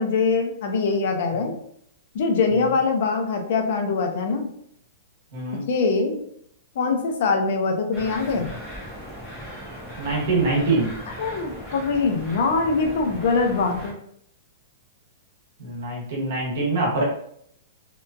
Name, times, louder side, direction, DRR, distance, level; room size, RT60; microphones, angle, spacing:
voice 1, 0.0-1.5 2.1-4.5 5.7-6.2 6.8-8.5 11.2-14.0, left 4 dB, 60° left, 4 dB, 0.5 m, -23 dB
voice 2, 5.3-5.6 10.0-10.9 15.6-17.0, right 2 dB, 65° right, -4 dB, 1.2 m, -24 dB
sound 1, 7.9-13.9, equal, ahead, 0.9 m, -38 dB
2.8 x 2.4 x 2.3 m, 0.68 s
hypercardioid pair, 155°, 0 cm